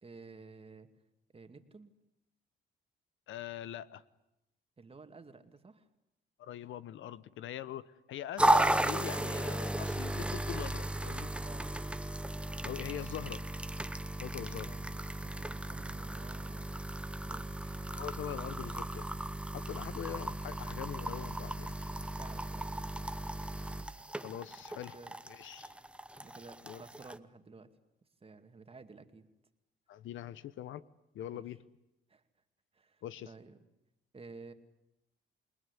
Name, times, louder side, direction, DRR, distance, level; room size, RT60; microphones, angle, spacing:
voice 1, 0.0-0.9 1.3-1.9 4.8-5.9 11.4-11.7 14.4-16.7 17.3-17.7 19.8-19.9 22.2-23.0 24.9-25.1 26.2-27.7 28.2-29.3 31.3-31.5 32.1-32.2 32.7-33.6 34.1-34.5, right 4 dB, 30° right, 7 dB, 2.3 m, -53 dB
voice 2, 3.3-4.0 6.4-11.3 12.6-13.4 14.2-14.7 17.9-19.1 19.5-21.8 24.1-25.0 25.3-25.7 26.6-26.8 29.9-30.9 31.1-31.6 33.0-33.3, left 11 dB, 75° left, 16 dB, 1.0 m, -43 dB
sound 1, 8.4-27.2, right 1 dB, 5° right, 1.0 m, -35 dB
28.0 x 20.0 x 9.9 m, 0.90 s
cardioid pair, 90°, 20 cm